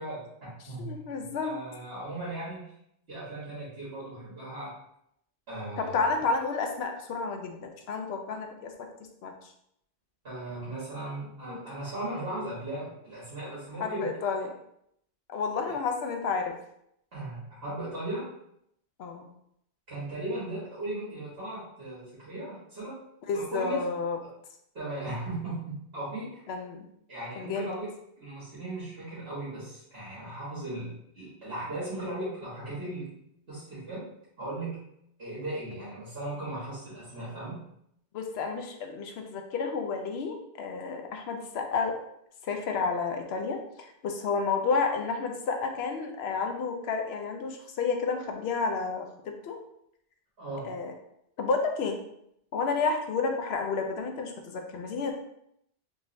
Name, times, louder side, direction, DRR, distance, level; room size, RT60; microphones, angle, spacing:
voice 1, 0.0-2.6 3.1-4.7 5.5-6.1 10.2-14.1 17.1-18.3 19.9-22.9 23.3-23.8 24.7-26.5 27.1-33.1 33.5-34.1 34.4-34.8 35.2-37.6 50.4-50.7, right 1 dB, 70° right, -10 dB, 1.6 m, -37 dB
voice 2, 0.8-1.6 5.8-8.7 9.2-9.3 11.5-11.6 13.8-14.5 15.3-16.5 19.0-19.3 23.3-24.2 26.5-26.9 27.4-27.7 38.1-41.9 42.4-49.6 50.7-50.9 51.4-52.0 52.5-55.1, left 4 dB, 75° left, 4 dB, 0.8 m, -31 dB
3.6 x 3.1 x 2.6 m, 0.76 s
omnidirectional pair, 1.1 m